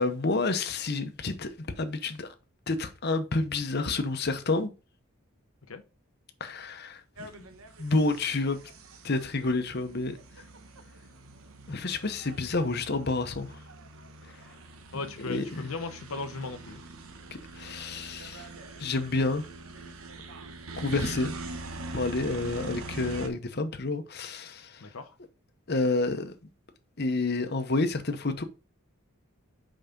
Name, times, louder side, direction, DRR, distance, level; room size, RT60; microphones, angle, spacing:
voice 1, 0.0-2.3 2.7-4.7 6.4-7.5 7.8-8.6 9.0-10.2 11.7-13.5 14.9-15.7 17.3-18.5 18.8-19.4 20.8-21.3 21.9-24.9 25.7-26.4 27.0-28.4, left 3 dB, 50° left, 0.9 m, -29 dB
sound 1, 7.2-23.3, right 2 dB, 80° right, 1.1 m, -43 dB
voice 2, 14.9-16.8 24.8-25.1, left 3 dB, 85° left, 0.8 m, -37 dB
5.7 x 4.9 x 5.2 m
head